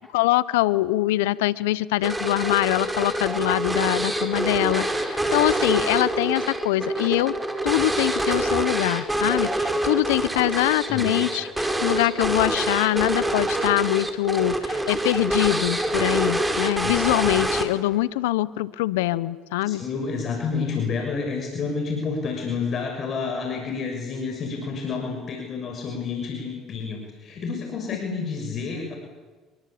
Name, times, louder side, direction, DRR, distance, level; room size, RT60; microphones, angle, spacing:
voice 1, 0.1-7.3 7.6-19.8 28.1-28.2, left 17 dB, 85° left, 19 dB, 0.9 m, -23 dB
sound 1, 2.0-18.0, right 1 dB, 10° right, 4.6 m, -26 dB
voice 2, 19.7-29.0, left 5 dB, 50° left, 3 dB, 6.4 m, -29 dB
28.5 x 23.5 x 8.7 m, 1.3 s
hypercardioid pair, 65°, 0 cm